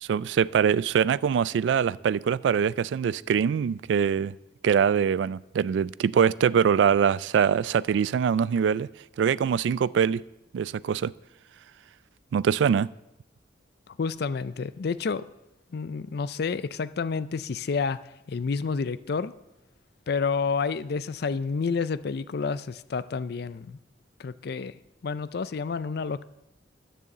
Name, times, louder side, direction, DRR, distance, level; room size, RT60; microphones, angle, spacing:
voice 1, 0.0-4.3 4.6-8.9 9.2-10.2 10.5-11.1 12.3-12.9, right 7 dB, 80° right, 20 dB, 0.3 m, -23 dB
voice 2, 13.9-15.2 15.7-18.0 18.3-19.3 20.1-23.8 24.2-26.2, left 5 dB, 60° left, 15 dB, 0.4 m, -29 dB
10.5 x 6.8 x 7.4 m, 0.90 s
head